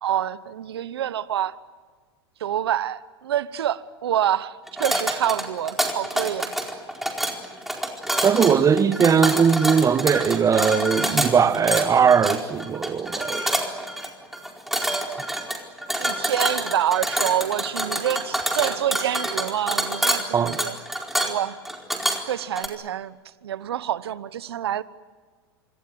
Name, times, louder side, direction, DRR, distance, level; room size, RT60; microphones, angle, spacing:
voice 1, 0.0-1.6 2.4-6.5 16.0-20.8 21.3-21.6 22.3-23.1 23.4-24.8, right 11 dB, 80° right, 1.0 m, -27 dB
sound 1, 4.7-22.7, right 1 dB, ahead, 4.5 m, -27 dB
voice 2, 8.2-13.5 20.3-20.6, right 7 dB, 25° right, 1.4 m, -19 dB
27.0 x 25.0 x 7.9 m
hypercardioid pair, 100°, 13 cm